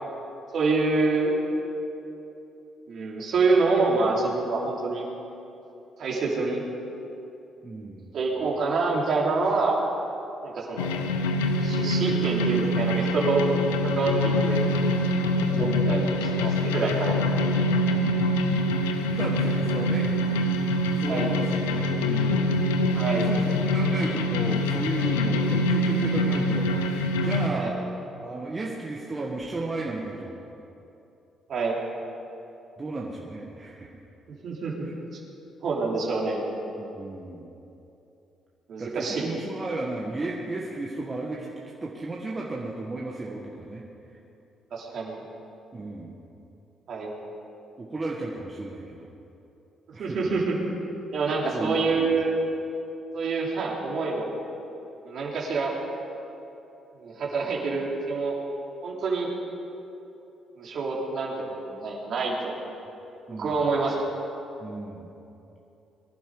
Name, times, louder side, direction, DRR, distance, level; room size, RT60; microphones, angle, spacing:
voice 1, 0.5-1.3 2.9-5.1 6.0-6.6 8.1-9.8 10.4-10.9 11.6-13.4 13.8-14.7 15.5-17.2 21.1-21.3 22.9-23.3 27.5-27.7 31.5-31.8 34.4-34.9 35.6-36.4 38.7-39.3 44.7-45.2 46.9-47.1 50.0-50.6 51.1-52.4 53.1-54.3 55.0-55.7 57.0-58.4 58.8-59.3 60.6-62.6 63.4-64.0, right 3 dB, 60° right, -3 dB, 3.3 m, -26 dB
voice 2, 7.6-8.0 15.5-16.0 19.1-20.2 21.0-22.6 23.1-27.8 28.2-30.3 32.8-33.9 34.8-34.9 36.8-37.5 38.8-41.5 41.8-44.2 45.7-46.2 47.8-49.1 49.9-50.3 51.3-52.1 63.3-63.6 64.6-65.1, right 2 dB, 35° right, -3 dB, 1.8 m, -34 dB
sound 1, 10.8-27.5, left 1 dB, 85° left, 0.8 m, -25 dB
22.5 x 11.5 x 5.1 m, 2.9 s
hypercardioid pair, 50°, 0 cm